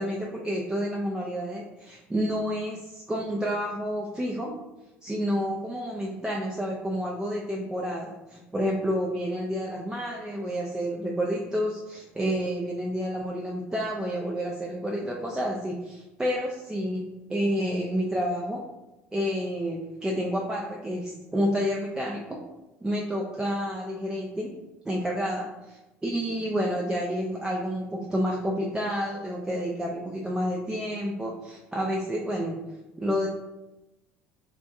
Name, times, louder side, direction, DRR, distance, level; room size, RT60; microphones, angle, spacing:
voice 1, 0.0-4.5 5.0-17.0 17.3-18.6 19.1-22.4 22.8-24.5 24.8-32.6 33.0-33.3, equal, 10° right, -2 dB, 0.3 m, -29 dB
2.6 x 2.2 x 2.5 m, 1.0 s
figure-of-eight pair, 65°, 7 cm